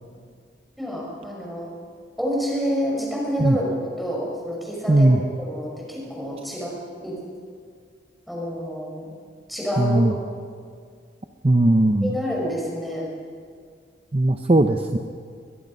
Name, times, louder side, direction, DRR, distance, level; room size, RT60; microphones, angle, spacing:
voice 1, 0.8-1.7 2.2-6.8 7.0-7.2 8.3-9.1 9.5-10.2 12.0-13.1, equal, ahead, -3 dB, 5.7 m, -28 dB
voice 2, 4.9-5.2 9.8-10.1 11.4-12.2 14.1-15.0, right 1 dB, 30° right, 5 dB, 0.7 m, -18 dB
22.5 x 21.5 x 5.5 m, 2.1 s
head